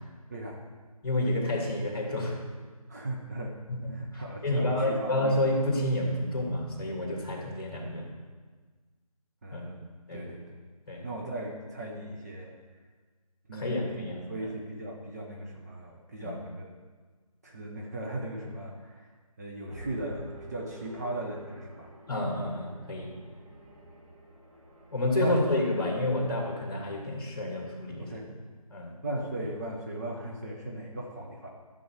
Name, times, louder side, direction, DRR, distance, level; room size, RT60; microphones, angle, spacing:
voice 1, 0.3-0.6 2.9-3.6 3.9-5.2 9.4-10.6 11.0-12.5 13.5-16.7 17.4-19.1 19.4-21.9 25.1-25.4 28.0-28.3 29.0-31.5, right 1 dB, 25° right, -2 dB, 1.0 m, -37 dB
voice 2, 1.0-2.4 3.7-8.1 9.5-9.6 10.1-10.2 10.9-11.0 13.5-14.5 16.2-16.3 22.1-23.1 24.9-28.1 28.7-28.9, left 1 dB, 35° left, -1 dB, 2.6 m, -29 dB
sound 1, 19.7-25.7, right 1 dB, 65° right, 2.5 m, -49 dB
12.5 x 7.1 x 4.6 m, 1.4 s
figure-of-eight pair, 160°, 19 cm